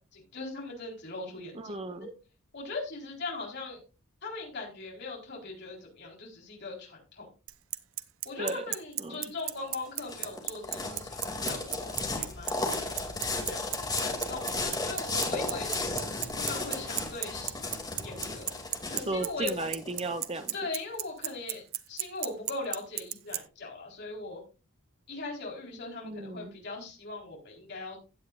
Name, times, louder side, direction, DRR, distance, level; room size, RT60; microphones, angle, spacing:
voice 1, 0.1-1.7 2.5-3.8 4.2-7.3 8.2-11.2 11.4-12.8 13.3-13.7 14.0-15.8 16.4-17.6 18.0-18.6 18.9-19.6 20.5-24.4 25.1-28.0, left 3 dB, 50° left, -1 dB, 4.3 m, -40 dB
voice 2, 1.5-2.1 8.4-8.6 9.0-9.2 18.9-20.5 26.0-26.6, right 2 dB, 30° right, 9 dB, 1.1 m, -35 dB
Bicycle, 7.5-23.4, right 15 dB, 70° right, 0.8 m, -32 dB
sound 1, 9.6-20.4, left 2 dB, 20° left, 2.5 m, -34 dB
16.0 x 9.4 x 2.5 m, 0.31 s
head